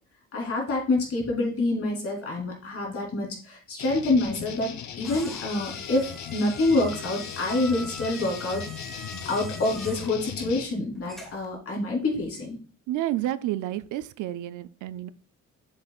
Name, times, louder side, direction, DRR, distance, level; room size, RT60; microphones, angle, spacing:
voice 1, 0.3-8.6 9.2-12.6, left 2 dB, 50° left, 3.3 m, -27 dB
sound 1, 3.8-10.6, left 8 dB, 70° left, 0.9 m, -38 dB
sound 2, 4.5-11.5, equal, ahead, 1.4 m, -44 dB
voice 2, 12.9-15.1, right 13 dB, 80° right, 0.5 m, -30 dB
7.4 x 7.2 x 2.4 m
cardioid pair, 90°, 30 cm